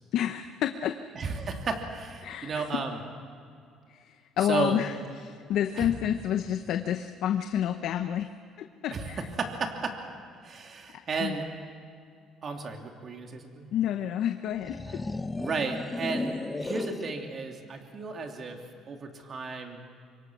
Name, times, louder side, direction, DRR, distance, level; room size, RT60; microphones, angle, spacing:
voice 1, 0.1-1.0 2.2-2.7 3.9-8.3 8.6-9.3 11.2-11.3 13.7-15.0, left 10 dB, 70° left, 7 dB, 0.9 m, -29 dB
voice 2, 1.1-3.0 4.5-4.8 5.8-5.9 8.9-9.1 9.4-9.9 10.4-11.4 12.4-13.7 15.4-16.3 16.6-18.6 18.8-19.8, right 4 dB, 40° right, 3 dB, 2.9 m, -33 dB
sound 1, 14.6-17.2, left 2 dB, 15° left, 0.8 m, -34 dB
26.0 x 23.0 x 6.3 m, 2.3 s
cardioid pair, 115°, 0 cm